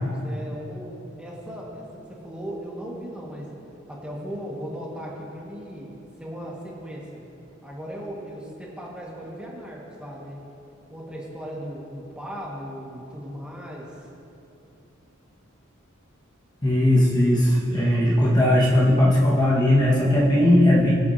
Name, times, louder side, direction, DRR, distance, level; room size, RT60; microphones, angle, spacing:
voice 1, 0.0-3.5 3.9-7.2 7.6-10.4 10.9-14.0, equal, 5° right, -5 dB, 1.8 m, -37 dB
voice 2, 16.6-20.9, left 1 dB, 20° left, -6 dB, 1.7 m, -18 dB
24.0 x 8.5 x 2.9 m, 2.8 s
head